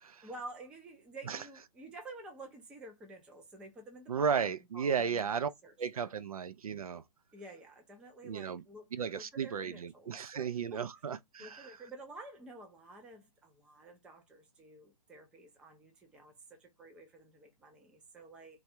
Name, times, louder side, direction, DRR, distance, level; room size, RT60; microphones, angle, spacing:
voice 1, 0.2-6.2 7.3-8.9 9.1-10.8 11.4-18.6, right 2 dB, 5° right, 0.5 m, -51 dB
voice 2, 4.1-5.5 5.8-7.0 8.2-8.6 8.9-11.7, right 6 dB, 60° right, 0.4 m, -34 dB
3.3 x 2.3 x 4.2 m
figure-of-eight pair, 140°, 20 cm